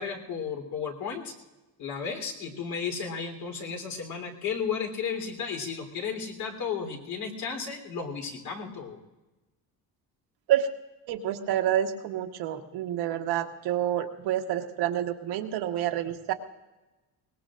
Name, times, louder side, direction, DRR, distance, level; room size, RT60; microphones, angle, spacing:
voice 1, 0.0-1.3 1.8-9.0, left 6 dB, 70° left, 2 dB, 3.7 m, -34 dB
voice 2, 11.1-16.3, right 11 dB, 90° right, 4 dB, 1.4 m, -28 dB
23.5 x 20.5 x 2.6 m, 1.1 s
cardioid pair, 155°, 37 cm